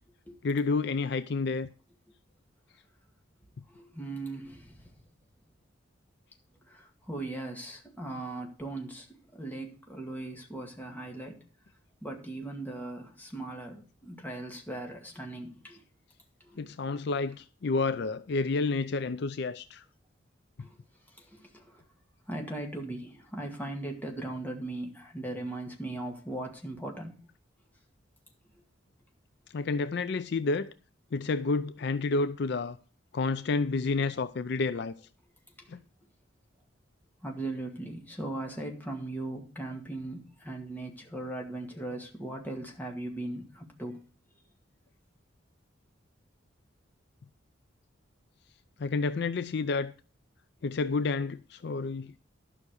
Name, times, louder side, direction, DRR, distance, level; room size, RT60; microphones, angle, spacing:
voice 1, 0.4-1.7 16.6-19.8 20.6-20.7 29.5-30.7 31.1-32.8 33.1-34.9 35.7-35.8 48.8-49.9 50.6-52.1, left 4 dB, 60° left, 0.4 m, -30 dB
voice 2, 3.7-4.9 6.7-11.4 12.0-15.8 16.4-16.7 20.6-20.8 21.1-21.8 22.3-27.1 35.6-35.7 37.2-44.0, right 2 dB, 10° left, 2.0 m, -39 dB
12.0 x 5.9 x 6.4 m
head